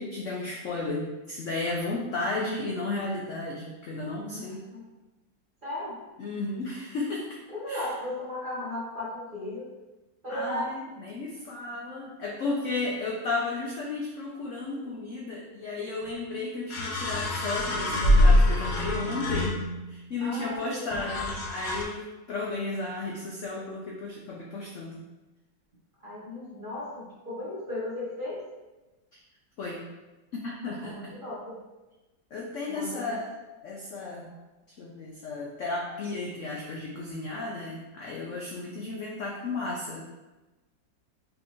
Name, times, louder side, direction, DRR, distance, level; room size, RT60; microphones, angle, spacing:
voice 1, 0.0-4.6 6.2-7.3 7.7-7.9 10.3-19.6 19.9-25.0 29.6-29.9 30.3-31.1 32.3-33.3 33.6-34.3 34.8-40.0, left 3 dB, 80° left, -3 dB, 0.6 m, -34 dB
voice 2, 4.3-4.8 5.6-6.0 7.5-9.7 10.2-10.7 20.2-21.0 23.5-23.7 26.0-28.4 30.8-31.6 32.7-33.2 34.2-34.3 35.9-36.2, left 1 dB, 35° right, -8 dB, 1.0 m, -36 dB
sound 1, 16.0-16.1 16.7-20.0 20.9-21.8, left 1 dB, 65° left, 1.2 m, -24 dB
5.3 x 2.7 x 3.0 m, 1.1 s
omnidirectional pair, 2.0 m